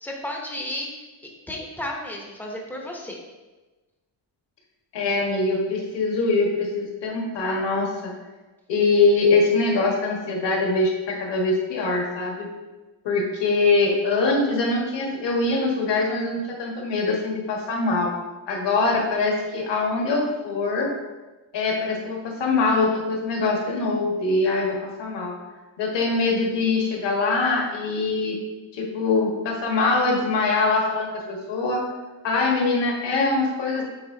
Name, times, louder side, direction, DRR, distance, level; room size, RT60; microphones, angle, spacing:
voice 1, 0.0-0.9 1.5-3.2, left 1 dB, 5° left, 0 dB, 0.7 m, -32 dB
voice 2, 4.9-8.1 8.7-12.5 13.0-18.1 18.5-20.9 21.5-25.3 25.8-28.4 28.7-31.8 32.2-33.8, left 3 dB, 60° left, -1 dB, 1.5 m, -23 dB
7.8 x 4.7 x 2.7 m, 1.2 s
cardioid pair, 170°, 47 cm